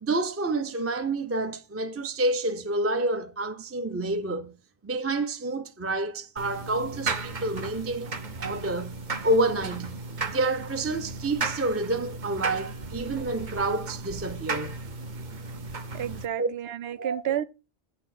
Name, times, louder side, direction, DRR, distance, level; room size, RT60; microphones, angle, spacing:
voice 1, 0.0-4.5 4.8-10.0 10.3-14.8 16.4-16.5 17.0-17.2, right 2 dB, 20° right, 0.4 m, -28 dB
sound 1, 6.4-16.2, right 3 dB, 50° right, 0.9 m, -35 dB
voice 2, 15.9-17.4, right 10 dB, 80° right, 0.8 m, -31 dB
8.9 x 4.2 x 5.9 m
omnidirectional pair, 1.0 m